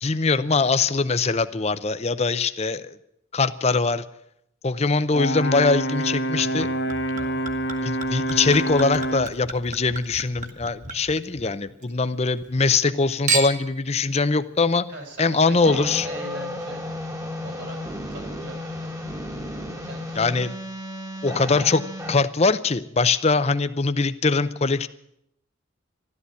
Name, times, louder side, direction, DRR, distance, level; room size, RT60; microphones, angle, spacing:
voice 1, 0.0-3.0 3.3-4.0 4.6-6.7 7.8-14.9 15.2-16.1 20.2-20.5 21.2-21.8 22.1-24.9, left 4 dB, 30° left, 13 dB, 0.6 m, -22 dB
Brass instrument, 5.1-9.4, right 1 dB, 50° left, 0.9 m, -27 dB
Chink clink / Liquid, 6.4-11.9 12.2-12.9 13.3-13.8 14.5-14.6, right 4 dB, 40° right, 1.6 m, -33 dB
voice 2, 7.2-7.5 14.9-16.8 17.4-17.8 18.1-18.9 19.8-20.3, right 2 dB, 60° right, 4 dB, 4.5 m, -40 dB
sound 1, 15.7-22.2, left 1 dB, 15° right, 1.4 m, -33 dB
13.0 x 13.0 x 8.3 m, 0.78 s
head